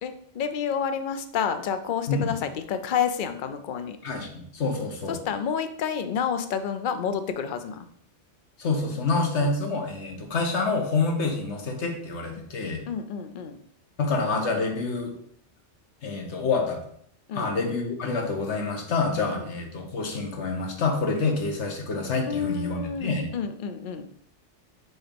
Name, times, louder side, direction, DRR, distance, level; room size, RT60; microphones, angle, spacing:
voice 1, 0.0-4.0 5.1-7.9 9.2-9.3 12.9-13.6 17.3-17.5 19.3-19.5 22.3-24.1, left 7 dB, 55° left, 9 dB, 0.6 m, -29 dB
voice 2, 4.0-5.2 8.6-12.8 14.0-15.1 16.0-16.8 17.3-23.3, left 3 dB, 75° left, 2 dB, 1.4 m, -27 dB
6.3 x 3.0 x 5.1 m, 0.67 s
omnidirectional pair, 1.2 m